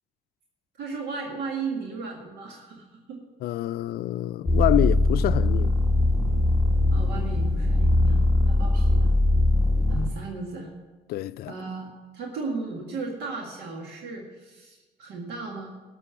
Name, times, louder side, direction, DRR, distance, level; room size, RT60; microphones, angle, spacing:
voice 1, 0.8-3.2 6.9-9.1 9.9-10.7 11.5-15.7, right 4 dB, 75° right, 1.9 m, -35 dB
voice 2, 3.4-5.7 11.1-11.5, left 14 dB, 65° left, 0.4 m, -26 dB
sound 1, 4.4-10.1, left 2 dB, ahead, 1.8 m, -21 dB
12.5 x 6.9 x 7.0 m
cardioid pair, 110°, 17 cm